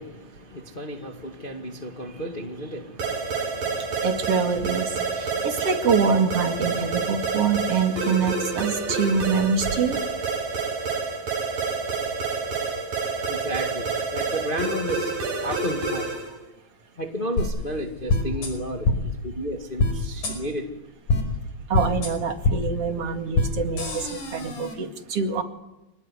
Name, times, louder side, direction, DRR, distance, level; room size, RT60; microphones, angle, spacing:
voice 1, 0.0-4.0 5.2-5.5 13.3-15.1 15.4-16.0 17.0-18.9 19.2-20.7, equal, 20° left, 1.8 m, -32 dB
sound 1, 3.0-16.3, right 4 dB, 70° right, 6.5 m, -28 dB
voice 2, 4.0-10.0 21.7-25.4, right 5 dB, 45° right, 2.8 m, -25 dB
sound 2, 17.4-17.5 18.1-18.5 18.8-19.0 19.8-19.9 20.2-20.3 21.1-21.2 21.7-22.1 22.4-22.6 23.3-23.5 23.8-24.7, left 2 dB, 65° left, 6.5 m, -23 dB
26.5 x 20.0 x 9.8 m
omnidirectional pair, 4.0 m